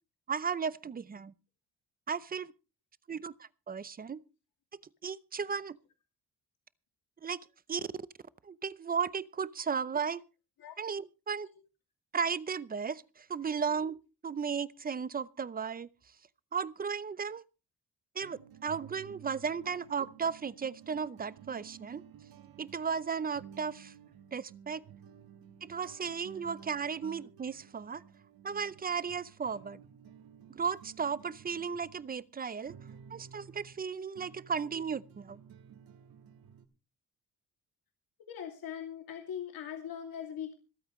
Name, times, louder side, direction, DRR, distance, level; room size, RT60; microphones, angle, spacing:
voice 1, 0.3-1.3 2.1-2.5 3.1-4.2 4.7-5.8 7.2-7.4 7.7-7.9 8.4-10.2 10.8-11.5 12.1-14.0 14.2-15.9 16.5-17.4 18.2-22.0 22.6-23.9 24.3-24.8 25.6-28.0 28.4-29.8 30.6-32.7 33.1-35.4, right 6 dB, 25° right, 0.6 m, -35 dB
sound 1, 18.2-33.8 34.2-36.7, right 8 dB, 80° right, 1.6 m, -54 dB
voice 2, 38.3-40.5, left 9 dB, 80° left, 2.6 m, -40 dB
26.0 x 8.9 x 3.1 m
cardioid pair, 135°, 35 cm